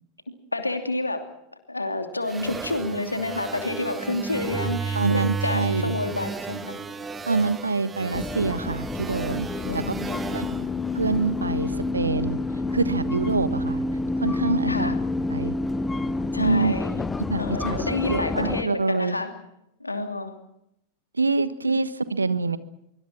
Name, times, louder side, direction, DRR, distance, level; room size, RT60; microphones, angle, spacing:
voice 1, 0.5-1.2 1.7-6.8 9.7-10.3 14.7-14.9 16.3-16.9 17.4-19.3 19.8-20.3, left 2 dB, 85° left, 6 dB, 2.9 m, -29 dB
sound 1, 2.3-11.7, right 5 dB, 15° right, 1.3 m, -33 dB
voice 2, 4.9-5.9 7.3-9.9 10.3-10.4 10.9-12.4 12.7-13.8 14.2-14.9 15.3-15.6 16.4-16.7 17.2-19.2 21.1-22.6, right 3 dB, 80° right, 14 dB, 1.3 m, -26 dB
sound 2, 8.1-18.6, left 3 dB, 10° left, 1.2 m, -28 dB
25.0 x 23.5 x 6.2 m, 0.80 s
figure-of-eight pair, 90°, 0 cm